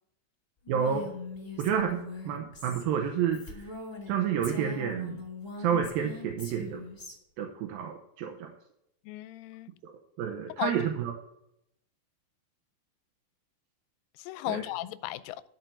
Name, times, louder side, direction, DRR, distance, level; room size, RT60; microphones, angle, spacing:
Female speech woman speaking, 0.6-4.1 4.4-7.1, left 3 dB, 15° left, 1.6 m, -42 dB
voice 1, 0.7-1.1 1.6-3.7 4.1-5.2 5.6-6.8 7.4-8.5 9.8-9.9 10.2-11.1 14.5-14.6, right 8 dB, 75° right, 2.6 m, -30 dB
voice 2, 9.1-9.7 10.6-10.7 14.2-15.4, left 16 dB, 80° left, 2.2 m, -35 dB
13.0 x 4.6 x 6.7 m
omnidirectional pair, 4.3 m